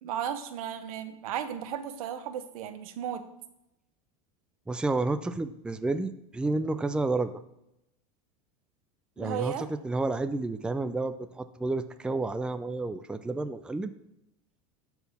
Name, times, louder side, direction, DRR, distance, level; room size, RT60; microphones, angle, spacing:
voice 1, 0.0-3.2 9.2-9.7, right 9 dB, 85° right, 10 dB, 1.1 m, -35 dB
voice 2, 4.7-7.4 9.2-9.5 9.8-13.9, right 2 dB, 5° right, 10 dB, 0.4 m, -30 dB
12.5 x 4.7 x 5.3 m, 0.84 s
supercardioid pair, 130°, 18 cm